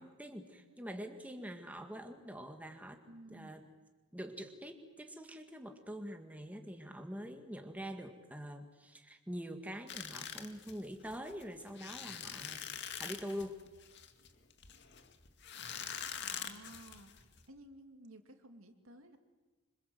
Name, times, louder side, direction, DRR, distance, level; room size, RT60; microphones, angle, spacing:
voice 1, 0.0-3.0 3.3-3.6 4.1-12.7 13.0-13.6, equal, 5° right, 5 dB, 1.9 m, -45 dB
voice 2, 3.1-3.6 16.2-17.1 17.5-19.2, right 1 dB, 75° right, 6 dB, 2.8 m, -55 dB
sound 1, 9.9-17.4, left 8 dB, 55° left, 2.2 m, -44 dB
26.5 x 26.5 x 7.9 m, 1.3 s
head